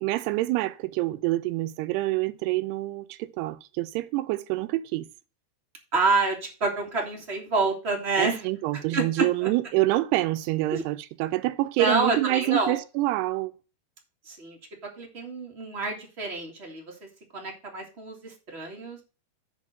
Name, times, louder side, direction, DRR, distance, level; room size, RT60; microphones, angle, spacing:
voice 1, 0.0-5.1 8.2-13.5, right 17 dB, 85° right, 2.7 m, -27 dB
voice 2, 5.9-8.4 8.9-9.5 10.7-10.8 11.8-12.8 14.2-17.1 17.3-19.0, right 3 dB, 30° right, 1.1 m, -28 dB
9.6 x 3.7 x 6.4 m
omnidirectional pair, 4.7 m